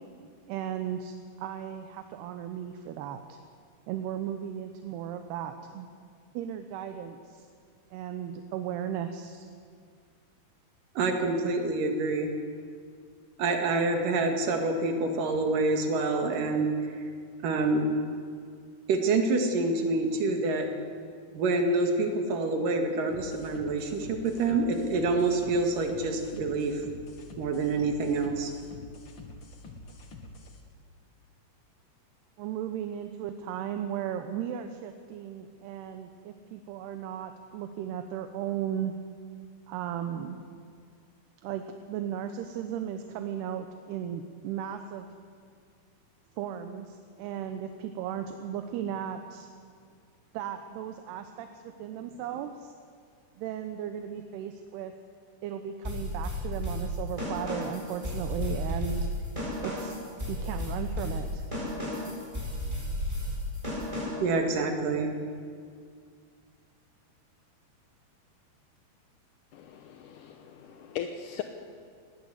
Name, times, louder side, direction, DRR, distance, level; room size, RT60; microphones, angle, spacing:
voice 1, 0.5-3.4 3.9-5.9 6.3-7.5 7.9-9.5 32.4-38.9 39.7-40.4 41.4-45.1 46.4-49.5 50.3-52.7 53.4-54.9 55.4-59.3 59.6-60.0 60.3-61.4, right 9 dB, 80° right, 7 dB, 3.0 m, -36 dB
voice 2, 10.9-12.3 13.4-16.7 17.4-17.9 18.9-20.7 21.3-26.8 27.4-28.5 64.2-65.1, right 3 dB, 60° right, 4 dB, 3.4 m, -27 dB
sound 1, 23.1-30.6, left 2 dB, 50° left, 1.4 m, -47 dB
sound 2, 55.8-64.3, left 1 dB, 5° right, 7.6 m, -33 dB
voice 3, 69.5-71.4, left 9 dB, 75° left, 5 dB, 2.0 m, -39 dB
20.0 x 17.5 x 8.1 m, 2.1 s
omnidirectional pair, 4.7 m